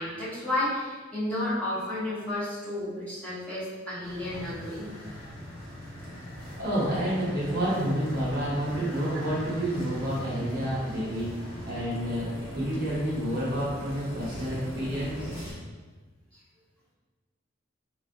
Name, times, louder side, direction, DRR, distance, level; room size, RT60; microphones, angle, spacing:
voice 1, 0.0-4.9, left 1 dB, 5° left, -11 dB, 0.8 m, -32 dB
sound 1, 4.0-15.5, equal, 80° left, 1.2 m, -40 dB
voice 2, 6.6-15.3, equal, 50° right, -6 dB, 0.9 m, -29 dB
4.1 x 2.3 x 2.4 m, 1.3 s
head